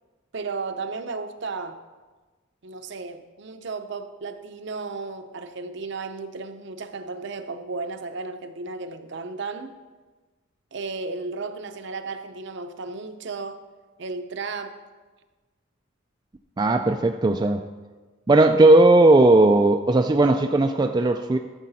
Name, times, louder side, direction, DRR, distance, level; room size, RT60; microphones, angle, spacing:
voice 1, 0.3-1.8 2.6-9.8 10.7-13.6 14.0-14.8, right 4 dB, 55° right, 8 dB, 0.7 m, -34 dB
voice 2, 16.6-17.6 18.3-21.4, right 2 dB, 20° right, 5 dB, 0.3 m, -17 dB
12.5 x 7.4 x 4.1 m, 1.3 s
head